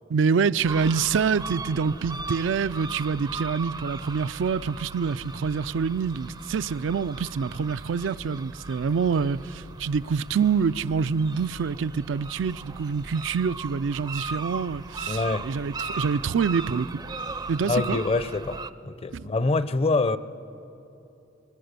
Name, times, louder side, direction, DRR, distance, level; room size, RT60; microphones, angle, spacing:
voice 1, 0.1-16.9 17.5-18.0 19.1-19.3, right 5 dB, 90° right, 0.4 m, -26 dB
sound 1, 0.6-18.7, right 3 dB, 20° right, 0.4 m, -38 dB
voice 2, 15.1-15.5 17.6-20.2, left 3 dB, 30° left, 0.5 m, -25 dB
22.0 x 21.5 x 6.7 m
head